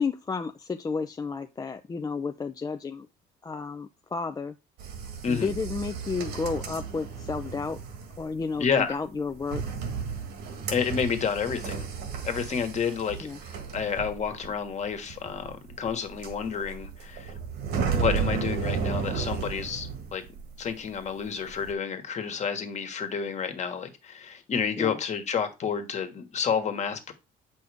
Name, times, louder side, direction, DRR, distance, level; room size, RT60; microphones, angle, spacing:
voice 1, 0.0-3.1 3.4-4.5 5.3-7.8 8.2-9.6 13.2-13.4 24.8-25.0, left 4 dB, 20° left, 0.5 m, -32 dB
sound 1, 4.8-20.7 21.0-21.7, right 6 dB, 75° right, 1.7 m, -34 dB
voice 2, 8.6-9.0 10.7-11.8 12.2-17.3 17.9-20.2 20.6-27.1, left 6 dB, 45° left, 1.5 m, -30 dB
7.9 x 5.4 x 3.5 m
cardioid pair, 110°, 17 cm